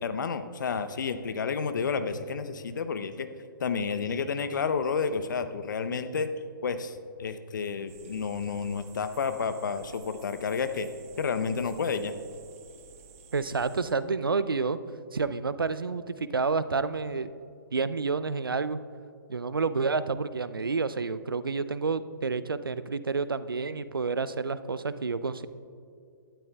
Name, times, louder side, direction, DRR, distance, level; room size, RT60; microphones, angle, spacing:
voice 1, 0.0-3.3 3.6-6.3 6.6-10.9 11.2-12.2, left 5 dB, 60° left, 10 dB, 0.8 m, -30 dB
sound 1, 7.9-13.9, right 6 dB, 40° right, 1.2 m, -52 dB
voice 2, 13.3-14.8 15.1-17.3 17.7-18.8 19.3-25.5, right 4 dB, 80° right, 14 dB, 0.6 m, -29 dB
18.0 x 12.5 x 2.3 m, 2.5 s
figure-of-eight pair, 130°, 12 cm